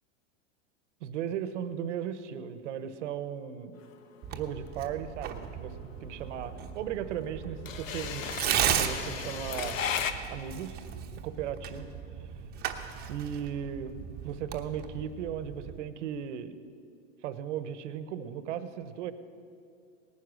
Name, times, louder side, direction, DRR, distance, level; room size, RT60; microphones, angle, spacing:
voice 1, 1.0-3.8 4.3-9.8 10.3-10.8 11.2-11.9 13.1-16.6 17.2-19.1, right 9 dB, 70° right, 13 dB, 1.0 m, -37 dB
sound 1, 3.8-10.1, left 7 dB, 90° left, 1.1 m, -36 dB
Tearing, 4.2-15.8, right 9 dB, 25° right, 0.9 m, -36 dB
18.0 x 9.8 x 6.4 m, 2.4 s
supercardioid pair, 140°, 38 cm